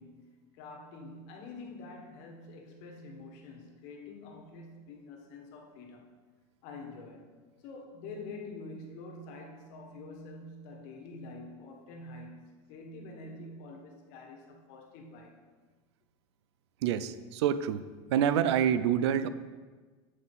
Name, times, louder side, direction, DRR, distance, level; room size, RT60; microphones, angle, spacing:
voice 1, 0.0-6.1 6.6-7.3 7.6-15.4, left 2 dB, 55° left, 2 dB, 1.4 m, -46 dB
voice 2, 16.8-17.8 18.1-19.3, right 9 dB, 85° right, 14 dB, 0.4 m, -27 dB
7.5 x 5.4 x 4.1 m, 1.4 s
supercardioid pair, 140°, 14 cm